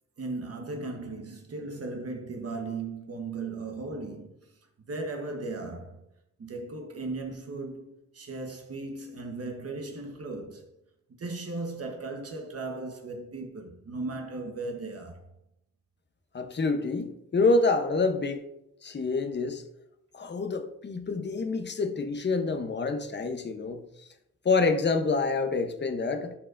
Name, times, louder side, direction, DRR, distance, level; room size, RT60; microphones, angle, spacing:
voice 1, 0.2-4.3 4.9-6.0 6.4-10.6 11.2-15.3, right 3 dB, 50° right, 1.1 m, -37 dB
voice 2, 16.3-18.4 18.8-19.6 20.1-23.8 24.4-26.3, left 3 dB, 35° left, 0.8 m, -27 dB
11.0 x 4.6 x 2.5 m
cardioid pair, 80°, 30 cm